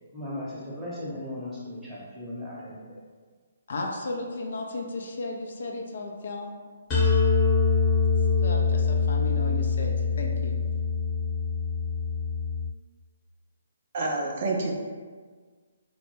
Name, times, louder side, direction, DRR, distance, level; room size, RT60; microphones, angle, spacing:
voice 1, 0.1-3.0, left 1 dB, 5° right, -9 dB, 0.8 m, -37 dB
voice 2, 3.7-6.5 8.4-10.6, left 2 dB, 60° left, 1 dB, 0.3 m, -34 dB
sound 1, 6.9-12.7, left 5 dB, 25° left, 0.8 m, -24 dB
voice 3, 13.9-14.7, right 2 dB, 45° right, 0 dB, 0.4 m, -28 dB
2.1 x 2.0 x 3.1 m, 1.5 s
figure-of-eight pair, 135°, 0 cm